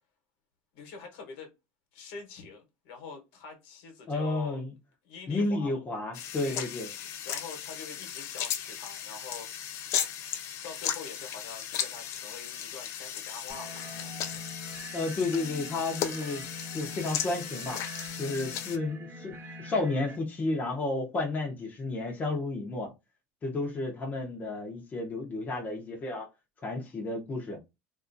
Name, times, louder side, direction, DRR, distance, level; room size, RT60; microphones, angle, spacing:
voice 1, 0.7-1.5 1.9-4.6 5.0-5.7 6.3-6.7 7.0-9.8 10.6-14.4, left 5 dB, 75° left, 1.1 m, -45 dB
voice 2, 4.1-4.7 5.3-6.9 14.9-16.4 16.7-17.8 18.2-22.9 23.4-26.3 26.6-27.6, left 2 dB, 25° left, 0.8 m, -32 dB
sound 1, 6.1-18.8, left 10 dB, 55° left, 0.4 m, -36 dB
sound 2, 13.5-20.2, left 1 dB, 35° right, 0.8 m, -44 dB
2.7 x 2.4 x 2.6 m
supercardioid pair, 110°, 6 cm